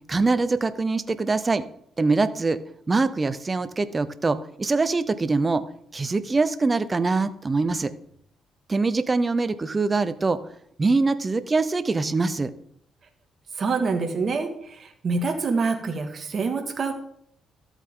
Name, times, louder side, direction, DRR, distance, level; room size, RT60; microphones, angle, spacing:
voice 1, 0.1-1.7 2.0-2.6 2.9-5.6 5.9-7.9 8.7-10.4 10.8-12.5, right 3 dB, 25° right, 13 dB, 0.8 m, -23 dB
voice 2, 13.6-16.9, right 4 dB, 50° right, 5 dB, 2.0 m, -26 dB
13.5 x 8.2 x 3.8 m, 0.68 s
cardioid pair, 90°, 0 cm